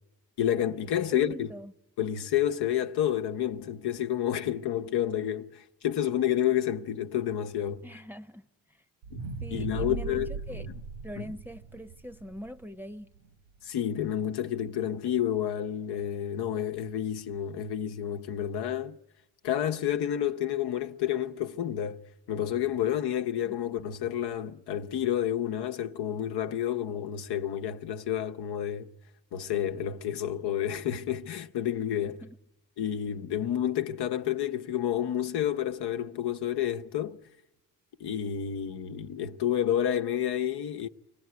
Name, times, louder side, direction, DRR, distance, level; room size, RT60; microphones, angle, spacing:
voice 1, 0.4-1.5 2.0-7.8 9.1-9.2 9.5-10.3 11.2-11.3 13.6-19.0 19.4-22.0 22.3-28.9 29.3-32.2 32.8-37.2 38.0-40.9, left 10 dB, 65° left, 1.0 m, -30 dB
voice 2, 1.1-1.7 7.8-8.8 9.4-10.7 11.0-13.1 23.4-23.6 32.0-32.4, equal, 5° right, 0.8 m, -43 dB
sound 1, 9.0-13.3 13.8-13.9, right 4 dB, 85° right, 1.6 m, -38 dB
25.0 x 17.5 x 9.4 m
supercardioid pair, 65°, 42 cm